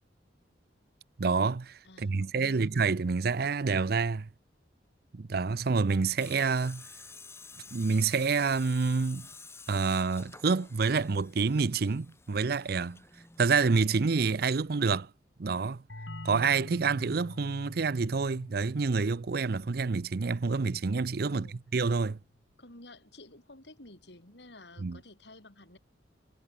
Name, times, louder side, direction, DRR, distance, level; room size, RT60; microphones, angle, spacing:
voice 1, 1.2-4.3 5.1-6.9 7.7-9.3 9.7-13.0 13.4-15.1 15.4-15.8 16.2-21.5 21.7-22.2 24.8-25.0, right 4 dB, 60° right, 0.6 m, -28 dB
voice 2, 1.8-2.7 21.3-21.5 22.6-25.8, left 2 dB, 70° left, 5.0 m, -52 dB
Tools, 6.2-14.0, left 4 dB, 15° left, 1.9 m, -51 dB
sound 1, 15.9-21.3, left 1 dB, 90° left, 3.8 m, -46 dB
head